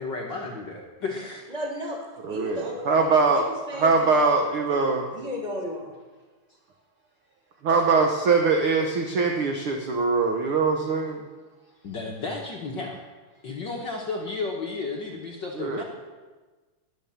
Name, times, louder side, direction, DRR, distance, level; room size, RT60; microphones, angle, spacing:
voice 1, 0.0-1.5 11.8-13.0 13.4-15.8, left 3 dB, 70° left, 0 dB, 1.1 m, -33 dB
voice 2, 1.5-2.0 2.3-4.3 4.7-5.9, equal, 15° left, -1 dB, 1.3 m, -35 dB
voice 3, 2.3-5.1 7.6-11.2 15.6-15.8, right 4 dB, 70° right, 3 dB, 1.2 m, -22 dB
20.0 x 7.2 x 7.1 m, 1.3 s
omnidirectional pair, 4.0 m